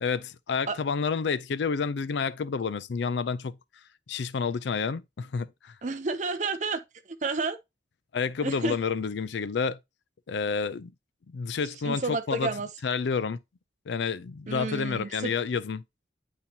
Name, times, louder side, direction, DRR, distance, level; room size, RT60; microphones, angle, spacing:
voice 1, 0.0-3.6 4.1-5.7 8.1-9.8 10.3-10.9 11.3-12.5 12.8-13.4 13.9-15.8, left 5 dB, 75° left, 0.4 m, -29 dB
voice 2, 5.8-6.8 7.2-7.6 8.4-8.8 11.8-12.7 14.5-15.3, right 3 dB, 40° right, 0.5 m, -30 dB
8.8 x 4.2 x 2.7 m
head